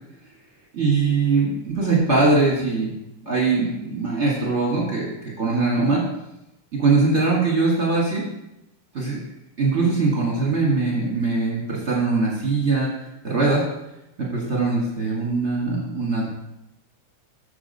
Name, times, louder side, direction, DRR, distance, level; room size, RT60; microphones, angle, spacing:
voice 1, 0.8-2.9 3.2-6.0 6.7-8.2 8.9-9.2 9.6-12.9 13.2-13.6 14.2-16.3, right 3 dB, 35° right, -4 dB, 1.1 m, -21 dB
6.9 x 6.2 x 5.2 m, 0.89 s
omnidirectional pair, 3.6 m